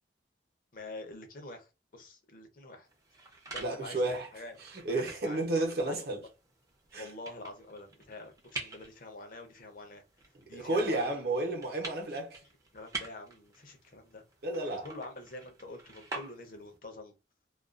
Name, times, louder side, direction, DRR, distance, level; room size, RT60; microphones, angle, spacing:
voice 1, 0.7-2.9 3.5-4.6 4.9-5.4 5.8-6.1 7.0-10.0 10.5-11.2 12.7-14.2 14.7-17.1, left 2 dB, 50° left, 0.6 m, -46 dB
sound 1, 2.9-16.8, right 3 dB, 20° right, 0.5 m, -47 dB
voice 2, 3.6-4.3 4.6-6.2 6.9-7.1 10.5-12.4 14.4-14.9, right 2 dB, 60° right, 0.7 m, -32 dB
2.3 x 2.3 x 2.4 m
head